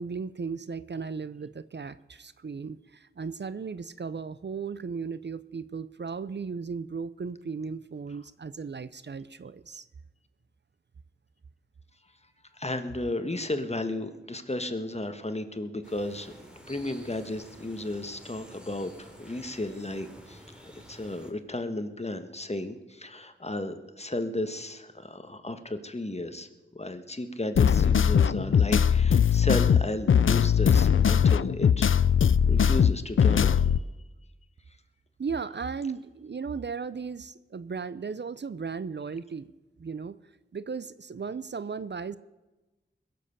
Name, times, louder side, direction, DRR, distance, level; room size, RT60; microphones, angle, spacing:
voice 1, 0.0-9.9 35.2-39.5 39.8-40.2 40.5-42.2, right 5 dB, 60° right, 16 dB, 0.5 m, -36 dB
voice 2, 12.5-16.4 16.7-32.0 32.5-33.7, left 1 dB, 30° left, 9 dB, 1.3 m, -34 dB
sound 1, 15.8-21.3, equal, 5° right, 3.0 m, -50 dB
sound 2, 27.6-33.8, left 7 dB, 75° left, 0.4 m, -21 dB
21.5 x 7.7 x 6.8 m, 1.1 s
wide cardioid pair, 50°, 21 cm